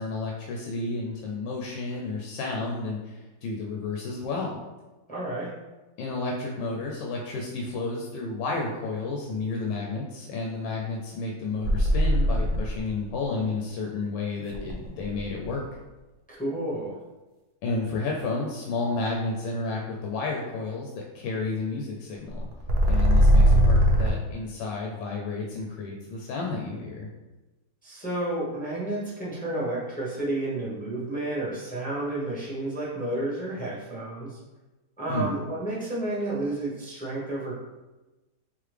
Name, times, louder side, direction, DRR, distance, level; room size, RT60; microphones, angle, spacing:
voice 1, 0.0-4.5 6.0-15.6 17.6-22.4 22.8-27.1 35.1-35.4, left 3 dB, 85° left, -1 dB, 1.3 m, -31 dB
voice 2, 5.1-5.5 16.3-17.0 27.8-34.4 35.0-37.6, right 2 dB, 10° left, -6 dB, 0.5 m, -31 dB
sound 1, 11.6-12.9 14.5-15.5 22.4-24.1, equal, 70° right, 0.5 m, -20 dB
3.8 x 2.8 x 3.3 m, 1.1 s
omnidirectional pair, 1.9 m